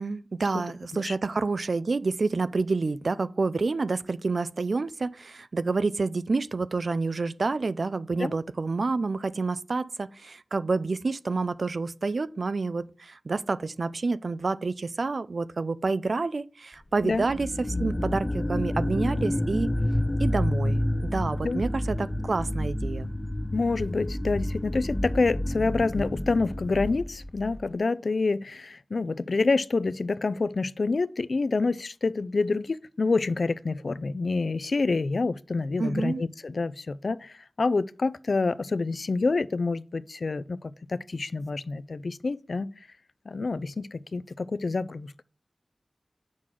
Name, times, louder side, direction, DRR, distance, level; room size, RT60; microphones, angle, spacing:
voice 1, 0.0-19.7 20.2-23.1 35.8-36.2, right 3 dB, 75° right, 0.4 m, -28 dB
sound 1, 17.0-27.7, left 1 dB, 25° left, 0.5 m, -29 dB
voice 2, 23.5-42.7 43.3-45.2, left 3 dB, 80° left, 0.4 m, -27 dB
7.5 x 6.3 x 3.7 m
wide cardioid pair, 70°, 0 cm